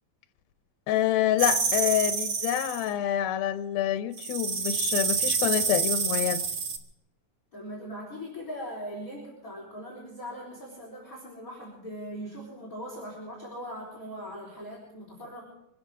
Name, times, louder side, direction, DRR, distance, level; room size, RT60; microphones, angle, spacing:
voice 1, 0.9-6.4, left 12 dB, 90° left, 10 dB, 2.6 m, -27 dB
sound 1, 1.4-2.9 4.2-6.8, right 5 dB, 65° right, 1.2 m, -28 dB
voice 2, 7.5-15.4, equal, 25° left, -3 dB, 4.2 m, -40 dB
25.0 x 12.5 x 3.7 m, 0.80 s
omnidirectional pair, 4.2 m